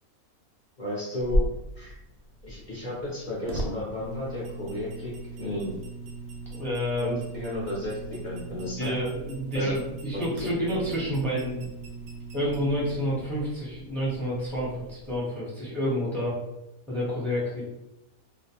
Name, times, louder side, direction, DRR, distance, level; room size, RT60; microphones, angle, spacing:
voice 1, 0.8-1.5 1.7-1.9 2.4-5.7 7.0-8.0 8.2-9.0 9.5-9.7 10.1-10.2, left 1 dB, 45° left, -7 dB, 0.6 m, -33 dB
sound 1, 1.2-13.5, equal, 65° right, 0.7 m, -37 dB
sound 2, 4.0-15.2, right 4 dB, 90° left, 1.1 m, -41 dB
voice 2, 6.5-7.2 8.8-11.7 12.3-16.4 16.9-17.6, equal, ahead, -7 dB, 0.5 m, -29 dB
2.5 x 2.1 x 2.7 m, 0.91 s
omnidirectional pair, 1.5 m